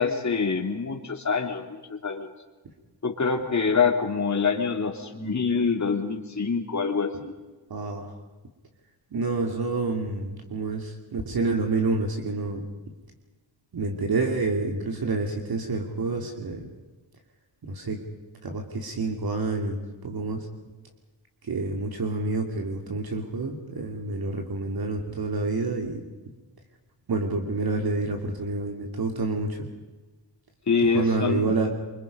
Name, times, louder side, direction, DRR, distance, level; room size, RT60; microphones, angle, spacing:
voice 1, 0.0-2.3 3.0-7.3 30.7-31.5, left 5 dB, 40° left, 3 dB, 3.2 m, -25 dB
voice 2, 7.7-8.2 9.1-12.6 13.7-16.6 17.6-18.0 18.4-20.5 21.4-26.0 27.1-29.7 30.9-31.7, right 3 dB, 50° right, 2 dB, 2.8 m, -28 dB
27.5 x 24.5 x 5.4 m, 1.2 s
cardioid pair, 110°, 46 cm